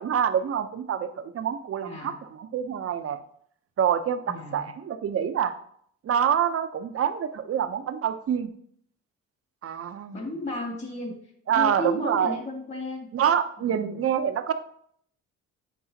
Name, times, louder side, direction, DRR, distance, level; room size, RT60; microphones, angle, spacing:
voice 1, 0.0-3.2 3.8-5.5 6.0-8.5 9.6-10.2 11.5-12.3 13.1-14.5, right 8 dB, 50° right, 11 dB, 0.7 m, -26 dB
voice 2, 1.8-2.2 4.3-4.7 10.1-11.2 11.5-13.1 13.6-14.0, left 1 dB, 40° left, 1 dB, 2.1 m, -33 dB
8.5 x 4.8 x 2.8 m, 0.64 s
cardioid pair, 90°, 30 cm